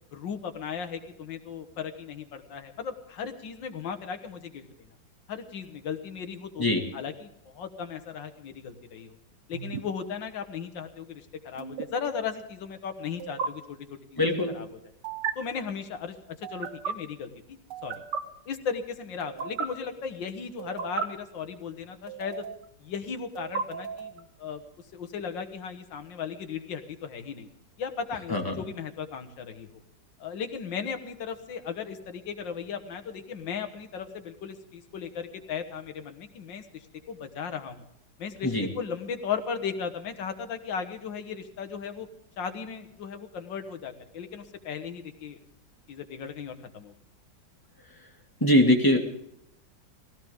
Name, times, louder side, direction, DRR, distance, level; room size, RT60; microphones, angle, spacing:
voice 1, 0.1-4.9 5.3-6.7 6.9-9.2 9.5-14.2 14.5-14.7 15.4-18.0 18.5-22.4 22.8-24.6 24.9-27.5 27.8-29.7 30.2-37.8 38.2-42.1 42.4-45.4 45.9-46.9, left 6 dB, 80° left, 6 dB, 2.0 m, -36 dB
sound 1, 9.5-9.8 11.6-11.9 13.2-13.5 15.0-15.3 16.4-16.9 17.7-18.2 19.2-19.7 20.6-21.1 22.1-22.7 23.4-24.2, right 6 dB, 70° right, 1.7 m, -34 dB
voice 2, 14.2-14.6 28.3-28.6 38.4-38.7 48.4-49.0, left 1 dB, 10° left, 1 dB, 2.1 m, -22 dB
19.0 x 17.0 x 3.6 m, 0.78 s
omnidirectional pair, 2.0 m